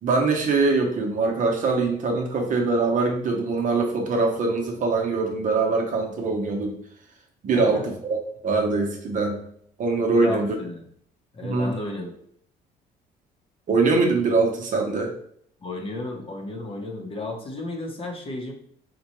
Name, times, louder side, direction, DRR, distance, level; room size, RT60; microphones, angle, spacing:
voice 1, 0.0-6.8 7.4-8.2 8.4-9.4 9.8-10.5 11.4-11.7 13.7-15.1, right 3 dB, 50° right, 2 dB, 0.8 m, -23 dB
voice 2, 10.1-10.9 11.3-12.1 15.6-18.5, left 2 dB, 35° left, 2 dB, 0.8 m, -33 dB
4.2 x 2.2 x 3.0 m, 0.65 s
cardioid pair, 110°, 17 cm